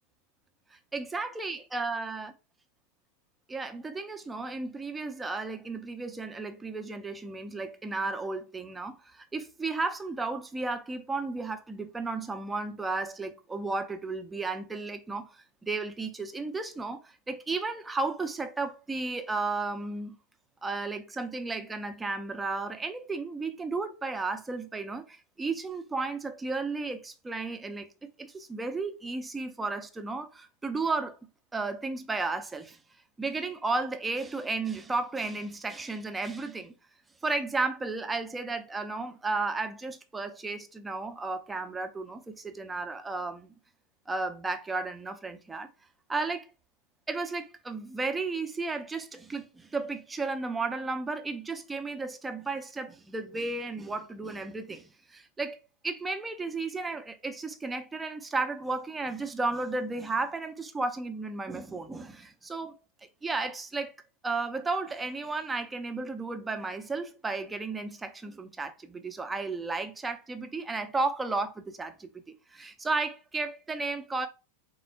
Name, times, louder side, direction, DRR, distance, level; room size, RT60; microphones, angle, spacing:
voice 1, 0.7-2.3 3.5-20.2 20.6-27.9 28.2-31.2 31.5-32.8 33.2-36.7 37.2-43.5 44.1-45.7 46.1-46.5 47.1-55.6 55.8-62.7 63.2-63.9 64.2-72.1 72.5-74.3, right 3 dB, 10° right, 0.6 m, -33 dB
4.1 x 2.2 x 4.4 m
figure-of-eight pair, 90°, 0 cm